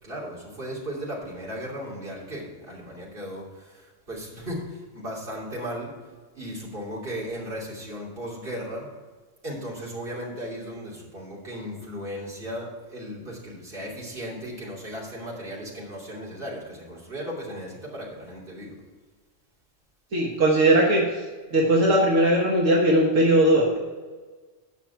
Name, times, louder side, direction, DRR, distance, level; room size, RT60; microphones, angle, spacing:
voice 1, 0.0-5.9 6.3-8.9 9.4-18.8, equal, 45° right, -5 dB, 3.1 m, -36 dB
voice 2, 20.1-21.0 21.5-23.8, right 1 dB, 80° right, -3 dB, 1.7 m, -19 dB
9.5 x 6.0 x 5.8 m, 1.4 s
omnidirectional pair, 1.3 m